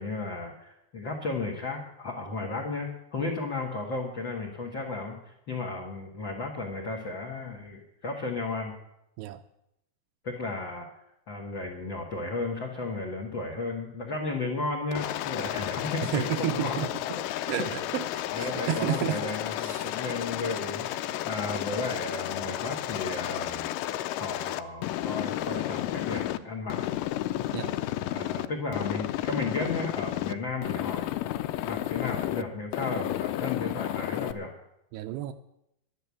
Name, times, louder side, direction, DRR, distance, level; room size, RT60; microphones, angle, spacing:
voice 1, 0.0-8.7 10.2-10.9 11.3-16.8 17.6-17.7 18.3-23.7 24.2-26.8 28.1-31.1 31.6-34.5, left 3 dB, 65° left, 2 dB, 1.2 m, -34 dB
Aircraft, 14.9-26.4 26.7-28.5 28.7-30.3 30.6-32.4 32.7-34.3, left 14 dB, 85° left, 2.7 m, -32 dB
voice 2, 16.1-16.9 17.5-19.2 19.6-19.9 27.5-27.8 34.9-35.3, right 12 dB, 80° right, 8 dB, 2.6 m, -31 dB
11.0 x 10.5 x 8.4 m, 0.81 s
omnidirectional pair, 5.0 m